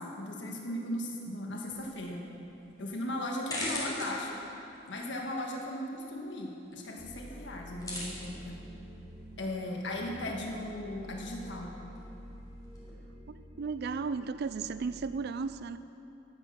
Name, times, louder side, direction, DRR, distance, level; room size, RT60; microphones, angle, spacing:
voice 1, 0.0-2.2 2.8-4.4 4.9-8.6 9.4-11.7, left 1 dB, 70° left, 0 dB, 1.6 m, -37 dB
sound 1, 1.7-12.9, left 1 dB, 20° left, 3.6 m, -45 dB
sound 2, 7.0-15.1, equal, 20° right, 2.1 m, -49 dB
voice 2, 13.3-15.8, right 4 dB, 60° right, 13 dB, 0.4 m, -35 dB
12.5 x 10.0 x 6.4 m, 2.8 s
head